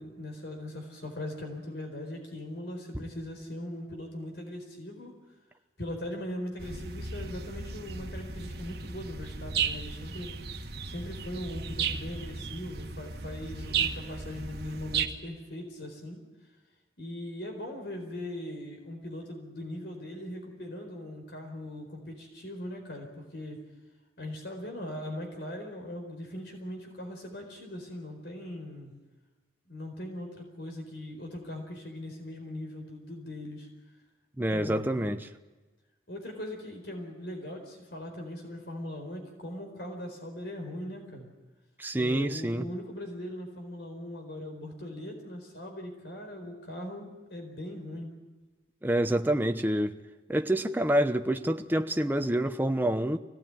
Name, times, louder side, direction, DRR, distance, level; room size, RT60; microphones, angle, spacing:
voice 1, 0.0-5.1 5.8-10.3 10.8-16.2 17.0-23.6 24.2-28.9 29.7-33.7 34.5-35.2 36.1-41.3 41.9-48.1, left 1 dB, 70° left, 4.5 m, -40 dB
sound 1, 6.6-15.1, right 6 dB, 65° right, 1.5 m, -35 dB
voice 2, 34.4-35.3 41.8-42.7 48.8-50.0 50.3-53.2, right 1 dB, 10° right, 0.9 m, -27 dB
24.5 x 18.0 x 9.1 m
head